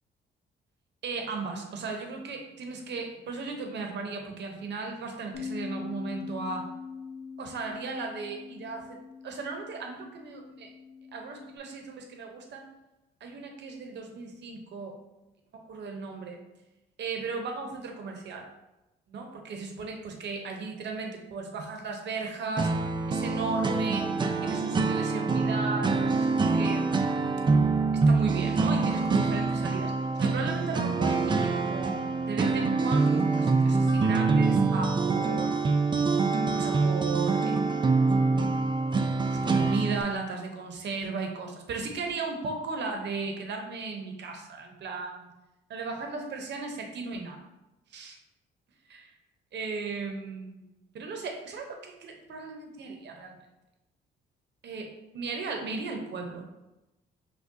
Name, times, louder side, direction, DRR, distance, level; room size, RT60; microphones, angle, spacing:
voice 1, 1.0-6.7 7.4-10.7 11.1-12.7 13.2-15.0 15.5-16.4 17.0-18.5 19.1-22.7 23.1-24.1 24.4-27.1 27.9-29.9 30.2-35.7 36.5-37.8 39.3-45.3 45.7-47.4 47.9-48.2 48.9-49.1 49.5-50.7 50.9-53.4 54.6-56.4, right 4 dB, 60° right, 3 dB, 0.7 m, -36 dB
Bass guitar, 5.3-11.6, left 6 dB, 65° left, 0.6 m, -42 dB
sound 1, 22.6-40.0, right 4 dB, 25° right, 0.4 m, -25 dB
6.1 x 2.3 x 2.6 m, 0.98 s
cardioid pair, 90°, 20 cm